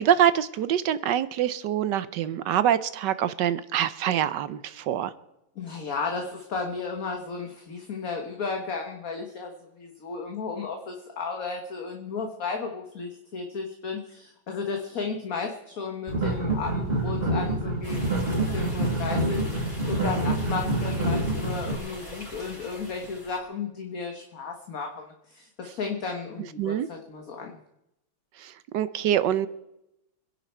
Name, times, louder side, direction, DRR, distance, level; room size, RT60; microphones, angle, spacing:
voice 1, 0.0-5.1 26.6-26.9 28.4-29.5, right 10 dB, 70° right, 14 dB, 1.1 m, -25 dB
voice 2, 5.6-27.6, left 4 dB, 45° left, 3 dB, 1.6 m, -34 dB
sound 1, 16.1-21.7, right 1 dB, 30° right, 2.1 m, -27 dB
sound 2, 17.8-23.4, equal, 20° left, 5.9 m, -42 dB
25.5 x 11.0 x 4.4 m, 0.87 s
omnidirectional pair, 2.3 m